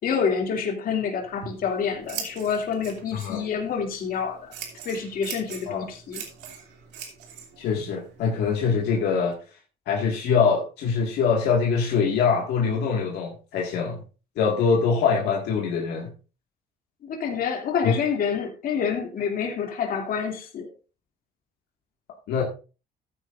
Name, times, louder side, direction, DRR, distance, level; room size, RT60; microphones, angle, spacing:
voice 1, 0.0-4.5 4.8-6.2 17.0-20.7, left 6 dB, 60° left, 2.6 m, -27 dB
Scissors, 1.2-9.3, right 7 dB, 85° right, 2.7 m, -42 dB
voice 2, 7.6-9.4 9.9-14.0 14.4-16.1 17.8-18.0 22.3-22.4, left 5 dB, 80° left, 1.9 m, -23 dB
14.0 x 9.3 x 2.5 m
cardioid pair, 110°, 17 cm